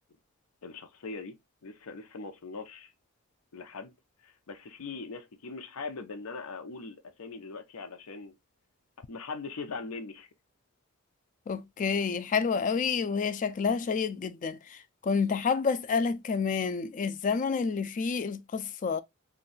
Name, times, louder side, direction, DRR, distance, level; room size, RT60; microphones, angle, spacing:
voice 1, 0.6-1.4 1.6-2.9 3.5-3.9 4.2-8.3 9.1-10.3, left 4 dB, 90° left, 0.6 m, -41 dB
voice 2, 11.5-19.0, left 5 dB, 35° left, 0.3 m, -29 dB
2.6 x 2.2 x 3.8 m
head